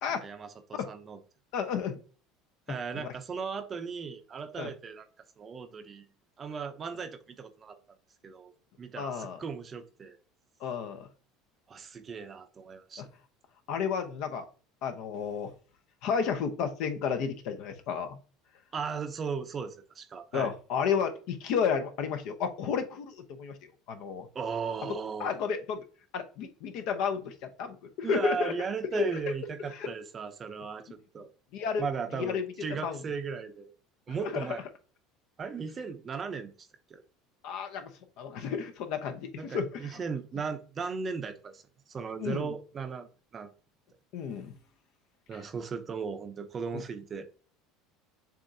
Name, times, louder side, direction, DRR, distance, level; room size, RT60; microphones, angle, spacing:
voice 1, 0.2-1.2 2.7-5.1 5.4-6.0 6.4-7.8 8.2-8.5 8.8-10.2 11.7-13.0 18.7-20.5 24.3-25.4 28.0-30.9 31.1-31.3 31.8-33.7 34.1-34.6 35.4-37.0 39.4-41.6 41.9-43.5 45.3-47.3, right 5 dB, 30° right, 0.6 m, -37 dB
voice 2, 1.5-2.0 2.9-3.1 4.6-4.7 9.0-9.4 10.6-11.1 13.0-13.1 13.7-14.4 14.8-15.5 16.0-18.2 20.3-23.6 23.9-24.3 25.2-25.8 26.1-28.5 28.9-29.1 29.7-29.9 31.5-31.8 32.1-33.0 34.3-34.5 37.4-37.9 38.2-39.9 42.2-42.5 44.1-44.5 45.3-45.4 46.7-46.8, left 6 dB, 65° left, 0.8 m, -32 dB
7.0 x 2.5 x 2.7 m
supercardioid pair, 130°, 0 cm